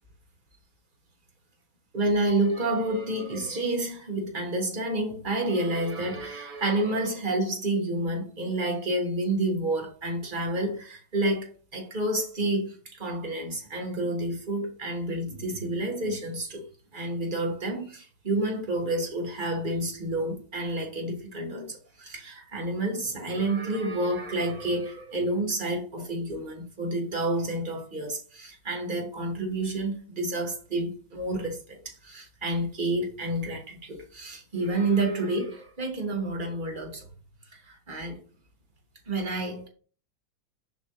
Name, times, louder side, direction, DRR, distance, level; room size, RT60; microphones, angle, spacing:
voice 1, 1.9-16.6 16.9-37.0 37.7-38.2 39.1-39.7, right 2 dB, 25° right, 1.5 m, -29 dB
7.5 x 5.5 x 3.0 m
omnidirectional pair, 2.2 m